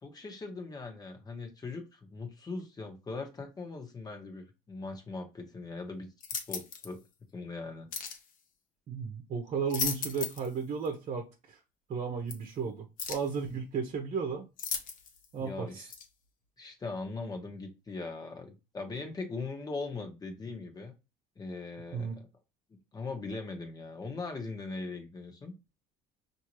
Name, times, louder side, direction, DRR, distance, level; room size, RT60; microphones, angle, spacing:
voice 1, 0.0-6.1 6.5-7.0 7.3-7.9 15.4-15.9 16.6-20.9 21.4-22.3 22.9-25.5, left 3 dB, 25° left, 1.2 m, -40 dB
sound 1, 6.2-6.9 7.9-8.2 9.5-10.5 10.9-11.0 12.3-12.4 13.0-13.3 14.6-15.3 15.9-16.1, left 6 dB, 60° left, 1.0 m, -36 dB
voice 2, 8.9-11.6 11.9-14.5 15.3-15.9 21.9-22.2, right 5 dB, 45° right, 1.0 m, -34 dB
5.4 x 2.8 x 3.1 m
cardioid pair, 115°, 16 cm